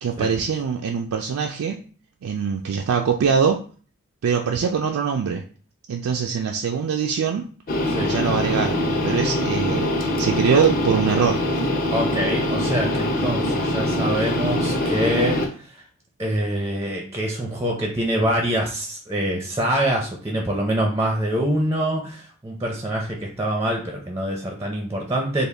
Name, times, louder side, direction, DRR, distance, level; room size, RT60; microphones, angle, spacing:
voice 1, 0.0-1.8 2.2-3.6 4.2-5.4 5.9-7.4 8.1-11.4, right 6 dB, 80° right, 2 dB, 0.3 m, -23 dB
sound 1, 7.7-15.5, left 1 dB, 40° left, 0.6 m, -23 dB
voice 2, 11.9-15.8 16.2-25.5, right 1 dB, 15° right, 1 dB, 0.4 m, -25 dB
3.5 x 2.3 x 3.3 m, 0.41 s
head